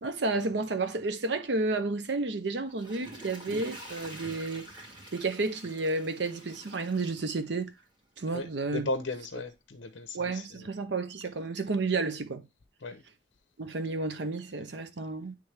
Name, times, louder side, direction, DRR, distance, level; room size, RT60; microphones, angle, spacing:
voice 1, 0.0-4.7 5.1-7.7 8.2-8.9 10.1-12.5 13.6-15.3, right 3 dB, 65° right, 0.7 m, -31 dB
Water / Toilet flush, 2.5-7.8 8.3-8.4, right 1 dB, 25° right, 1.8 m, -46 dB
voice 2, 8.7-10.7 12.8-13.0, left 2 dB, 70° left, 0.7 m, -35 dB
9.5 x 3.4 x 3.3 m
head